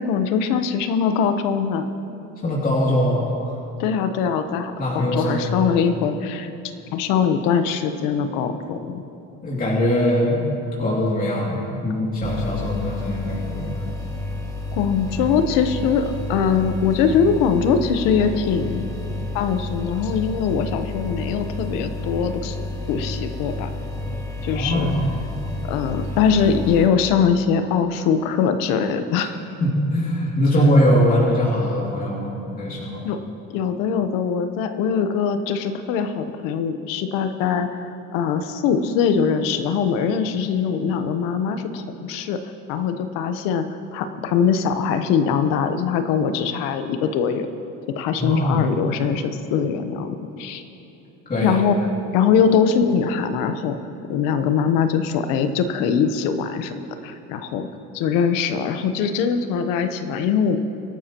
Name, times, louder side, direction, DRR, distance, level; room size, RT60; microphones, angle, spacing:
voice 1, 0.0-1.9 3.8-6.5 6.9-9.0 14.7-18.9 19.3-22.6 22.9-23.7 24.4-24.9 25.7-29.4 33.0-33.2 33.5-42.4 42.7-43.6 43.9-47.5 48.0-50.6 51.4-51.8 52.1-53.8 54.1-57.7 57.9-60.6, left 6 dB, 90° left, 9 dB, 1.0 m, -22 dB
voice 2, 2.4-3.6 4.8-5.7 9.4-10.4 10.8-13.8 24.5-25.1 29.6-33.0 48.2-48.6 51.3-51.6, equal, 25° left, -5 dB, 2.6 m, -21 dB
sound 1, 12.2-26.9, left 2 dB, 10° left, 1.9 m, -30 dB
25.0 x 12.0 x 3.0 m, 2.9 s
cardioid pair, 115°, 32 cm